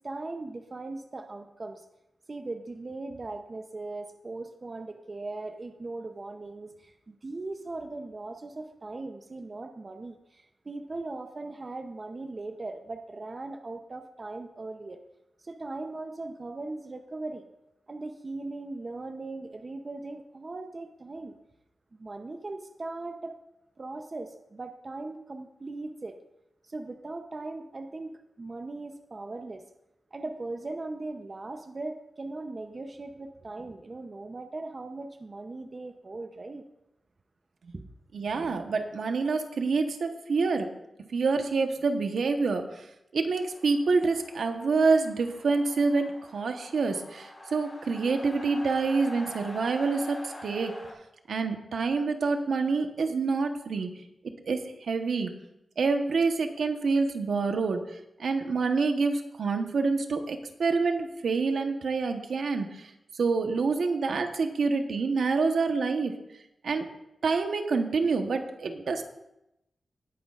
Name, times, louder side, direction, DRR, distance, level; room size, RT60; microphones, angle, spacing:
voice 1, 0.0-1.8 2.3-15.0 15.4-17.5 17.9-21.4 21.9-23.3 23.8-26.2 26.6-28.1 28.4-29.6 30.1-36.7 37.7-37.9, right 2 dB, 35° right, 6 dB, 0.6 m, -39 dB
voice 2, 38.1-40.7 41.1-42.9 43.1-50.7 51.3-54.0 54.4-54.6 54.9-55.3 55.8-57.8 58.2-62.9 63.1-66.1 66.6-66.9 67.2-69.0, right 4 dB, 75° right, 5 dB, 1.0 m, -27 dB
sound 1, 43.3-50.9, left 1 dB, 15° left, 4.3 m, -45 dB
19.0 x 9.4 x 2.4 m, 0.88 s
wide cardioid pair, 135°, 0 cm